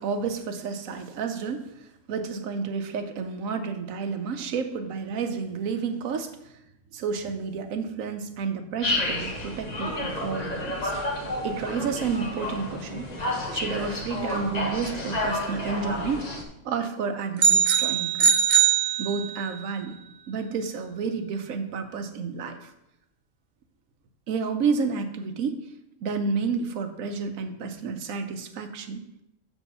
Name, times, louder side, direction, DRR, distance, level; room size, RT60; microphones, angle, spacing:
voice 1, 0.0-6.5 6.9-10.9 11.4-13.1 13.5-16.3 16.6-18.3 19.0-20.0 20.3-22.7 24.3-25.6 26.0-29.0, right 5 dB, 90° right, 8 dB, 1.2 m, -30 dB
sound 1, 8.8-16.4, left 1 dB, 35° left, 1.1 m, -30 dB
sound 2, 17.4-19.6, right 7 dB, 55° right, 0.5 m, -21 dB
6.2 x 4.6 x 6.6 m, 0.84 s
omnidirectional pair, 1.4 m